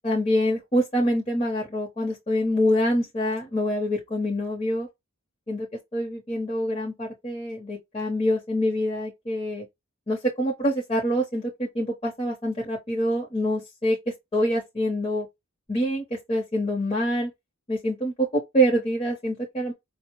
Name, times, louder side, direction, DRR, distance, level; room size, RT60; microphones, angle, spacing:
voice 1, 0.0-4.9 5.5-5.7 5.9-9.7 10.1-14.0 14.3-15.3 15.7-17.3 17.7-19.7, equal, 25° left, 0.7 m, -25 dB
5.0 x 2.0 x 2.9 m
head